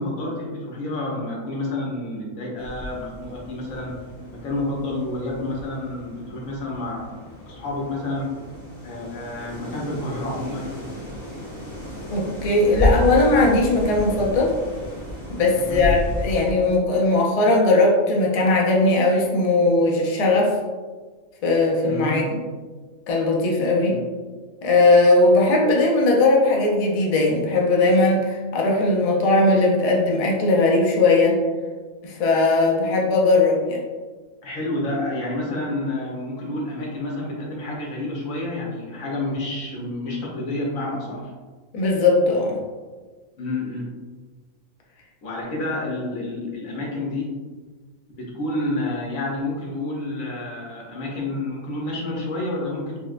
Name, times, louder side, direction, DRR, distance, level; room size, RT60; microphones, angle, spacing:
voice 1, 0.0-4.0 4.3-7.0 7.5-8.3 8.8-10.8 15.5-15.8 21.8-22.2 23.8-24.0 34.4-41.3 43.4-43.9 45.2-47.3 48.1-53.0, left 2 dB, 85° left, -3 dB, 1.3 m, -29 dB
sound 1, 2.6-16.5, left 2 dB, 35° left, 1.2 m, -31 dB
voice 2, 12.1-14.5 15.3-20.5 21.4-22.4 23.1-24.0 24.6-31.4 32.0-33.8 41.7-42.6, left 2 dB, 50° left, -2 dB, 0.4 m, -19 dB
4.4 x 2.1 x 2.4 m, 1.4 s
omnidirectional pair, 1.4 m